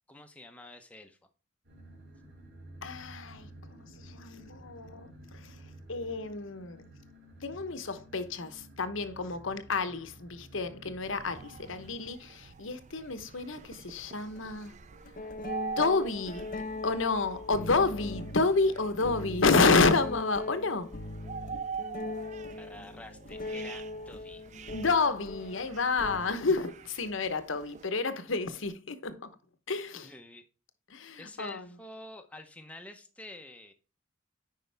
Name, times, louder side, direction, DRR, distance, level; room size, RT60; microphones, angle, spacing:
voice 1, 0.1-1.2 22.6-24.5 29.9-30.4 31.2-33.7, left 1 dB, 5° left, 0.8 m, -48 dB
sound 1, 1.6-11.9, right 1 dB, 55° right, 2.9 m, -52 dB
voice 2, 2.8-6.9 7.4-14.7 15.8-16.5 16.8-20.9 24.7-29.4 29.7-30.1 30.9-31.7, left 3 dB, 75° left, 1.0 m, -30 dB
sound 2, 10.9-11.0 12.5-12.6 14.3-14.5 15.0-26.6, left 2 dB, 45° left, 0.7 m, -40 dB
sound 3, 11.0-27.9, right 6 dB, 35° right, 0.3 m, -45 dB
9.5 x 5.4 x 3.4 m
head